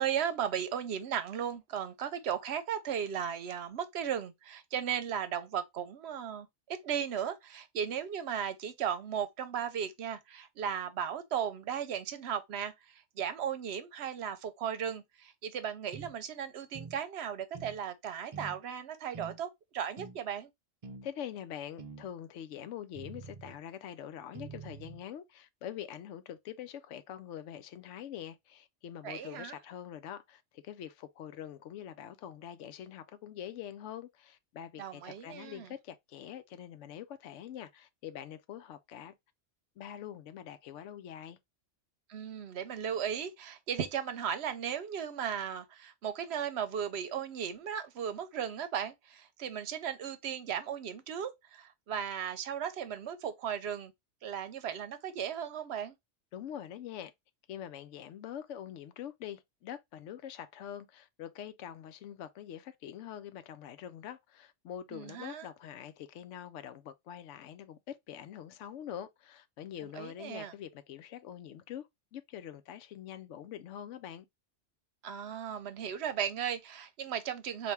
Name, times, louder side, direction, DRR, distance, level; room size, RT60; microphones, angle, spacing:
voice 1, 0.0-20.5 29.0-29.5 34.8-35.7 42.1-53.9 54.2-55.9 64.9-65.5 70.0-70.5 75.0-77.7, right 8 dB, 65° right, 0.9 m, -36 dB
sound 1, 15.9-16.1 16.7-17.0 17.5-17.8 18.3-18.6 19.1-19.4 20.0-20.2 20.8-21.1 21.8-22.1 22.9-23.6 24.3-25.0, right 5 dB, 45° right, 0.4 m, -46 dB
voice 2, 21.0-39.1 39.8-41.4 56.3-57.1 57.5-74.3, left 10 dB, 85° left, 0.9 m, -44 dB
4.2 x 2.6 x 3.3 m
omnidirectional pair, 1.2 m